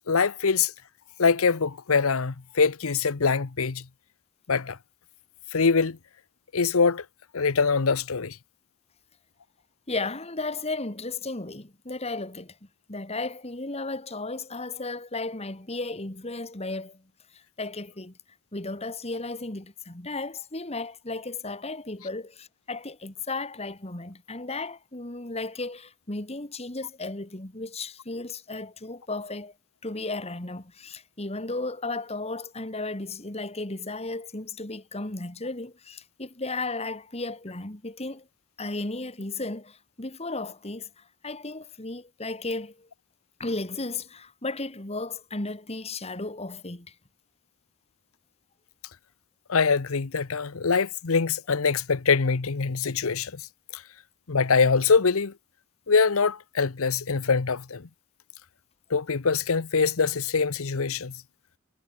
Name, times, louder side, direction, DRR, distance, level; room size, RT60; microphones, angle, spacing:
voice 1, 0.1-0.7 1.2-3.8 4.5-4.8 5.5-6.0 6.5-7.0 7.3-8.4 49.5-53.4 53.7-53.8 54.3-55.3 55.9-57.9 58.9-61.2, left 5 dB, 75° left, 0.8 m, -23 dB
voice 2, 9.9-12.6 12.9-17.0 17.3-18.1 18.5-29.5 29.8-38.3 38.6-42.9 43.4-46.9, left 2 dB, 30° left, 2.0 m, -34 dB
head